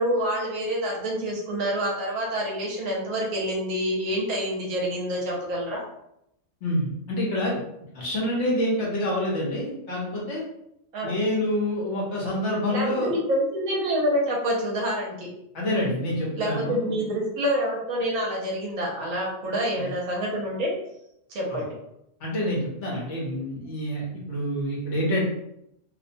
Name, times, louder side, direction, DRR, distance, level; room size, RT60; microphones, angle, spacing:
voice 1, 0.0-5.8 10.9-11.1 12.7-15.3 16.4-20.7 21.3-21.8, equal, 70° right, -2 dB, 1.1 m, -27 dB
voice 2, 6.6-7.6 7.9-10.4 11.0-13.1 15.5-17.0 19.7-19.9 21.5-21.6 22.2-25.3, left 1 dB, 60° left, -4 dB, 1.0 m, -27 dB
2.8 x 2.0 x 2.6 m, 0.78 s
omnidirectional pair, 1.4 m